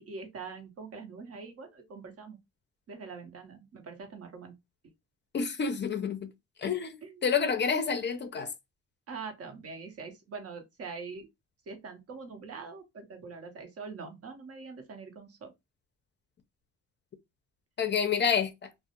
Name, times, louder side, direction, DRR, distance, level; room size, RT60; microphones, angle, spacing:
voice 1, 0.0-2.4 2.9-4.5 7.0-7.2 9.1-11.3 11.7-15.5, right 4 dB, 50° right, 0.8 m, -43 dB
voice 2, 5.3-6.3 6.6-7.0 7.2-8.5 17.8-18.7, left 6 dB, 35° left, 0.5 m, -28 dB
2.3 x 2.0 x 2.7 m
cardioid pair, 90°, 30 cm